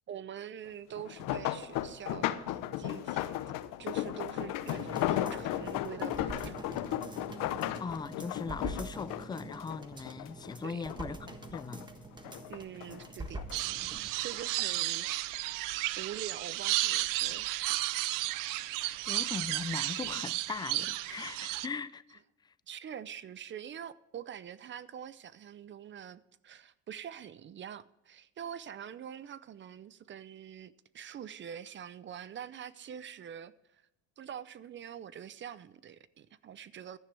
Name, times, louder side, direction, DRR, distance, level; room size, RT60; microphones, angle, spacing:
voice 1, 0.1-3.4 3.8-6.6 10.6-10.8 12.5-13.7 14.0-17.8 22.7-33.8 34.2-37.0, right 9 dB, 35° right, 0.6 m, -45 dB
sound 1, 1.0-10.5 10.9-11.8 12.2-13.6 14.3-14.6 15.0-15.1, left 13 dB, 75° left, 0.9 m, -35 dB
sound 2, 4.7-14.1 14.5-14.6, right 2 dB, 15° right, 1.4 m, -45 dB
voice 2, 7.8-11.9 19.1-22.2, left 5 dB, 15° left, 0.4 m, -39 dB
sound 3, 13.5-21.7, right 17 dB, 75° right, 0.6 m, -33 dB
16.0 x 11.0 x 3.4 m
cardioid pair, 120°, 33 cm